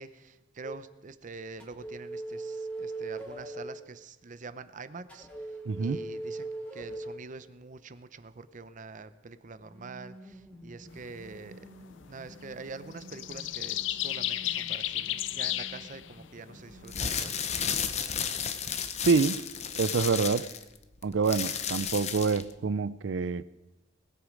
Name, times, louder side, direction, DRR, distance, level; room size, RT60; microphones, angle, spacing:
voice 1, 0.0-11.7 12.0-17.4, right 4 dB, 45° right, 13 dB, 0.6 m, -45 dB
sound 1, 0.6-0.8 1.6-3.8 5.1-7.2 9.6-17.4, right 2 dB, 5° left, 2.5 m, -43 dB
voice 2, 5.7-6.0 19.1-19.4 19.7-20.5 21.0-23.4, right 5 dB, 85° right, 17 dB, 0.5 m, -26 dB
sound 2, 10.9-11.3 11.8-11.9 12.1-12.5 12.9-17.1, left 13 dB, 85° left, 0.4 m, -33 dB
sound 3, 16.8-22.5, left 7 dB, 35° left, 0.7 m, -33 dB
20.5 x 8.2 x 5.1 m, 1.0 s
head